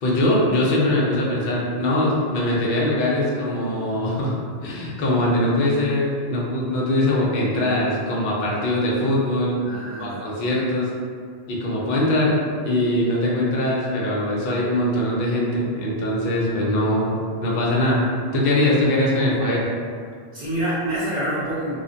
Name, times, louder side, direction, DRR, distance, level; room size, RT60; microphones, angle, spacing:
voice 1, 0.0-4.4 4.6-9.6 10.0-10.9 11.5-18.0 18.3-19.7, left 1 dB, 55° left, -4 dB, 0.6 m, -22 dB
voice 2, 9.6-10.3 20.3-21.8, right 1 dB, 45° right, -10 dB, 0.8 m, -27 dB
2.4 x 2.1 x 2.5 m, 2.1 s
omnidirectional pair, 1.2 m